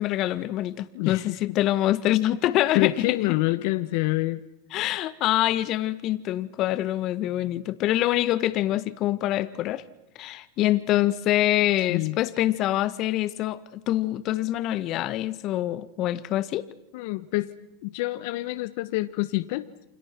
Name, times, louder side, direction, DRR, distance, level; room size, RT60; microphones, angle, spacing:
voice 1, 0.0-2.9 4.7-9.8 10.2-16.6, left 14 dB, 45° left, 1.7 m, -25 dB
voice 2, 0.9-1.4 2.7-4.4 11.9-12.2 16.9-17.5 17.8-19.7, left 19 dB, 65° left, 1.2 m, -26 dB
29.0 x 26.0 x 6.1 m
hypercardioid pair, 110°, 0 cm